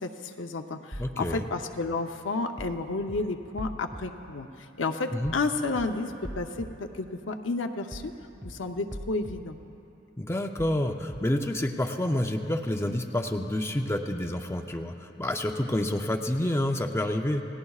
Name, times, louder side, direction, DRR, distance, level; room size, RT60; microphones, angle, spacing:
voice 1, 0.0-8.1 8.4-9.6, left 3 dB, 70° left, 5 dB, 0.7 m, -31 dB
sound 1, 0.9-1.3 2.6-2.8 3.1-3.2 3.6-4.0 5.2-5.4 5.7-5.8 6.2-6.7 7.9-8.1 8.4-8.5 8.9-9.3 10.6-10.8 11.1-11.2, equal, 25° right, 1.8 m, -40 dB
voice 2, 1.0-1.5 5.1-5.3 10.2-17.4, left 1 dB, 15° left, 4 dB, 0.6 m, -28 dB
29.0 x 17.5 x 2.4 m, 2.8 s
head